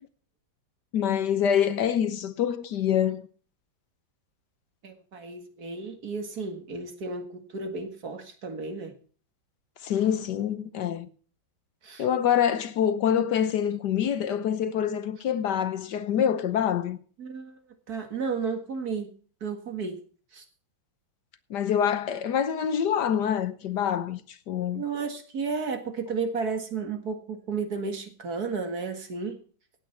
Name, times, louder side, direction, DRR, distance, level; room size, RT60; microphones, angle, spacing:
voice 1, 0.9-3.3 9.8-11.1 12.0-17.0 21.5-24.2 24.5-24.8, left 9 dB, 65° left, 1.4 m, -26 dB
voice 2, 4.8-9.0 11.8-12.1 17.2-17.6 17.9-19.1 19.4-20.0 20.3-20.4 24.7-29.4, right 4 dB, 50° right, 2.3 m, -33 dB
17.0 x 9.0 x 4.4 m
omnidirectional pair, 2.1 m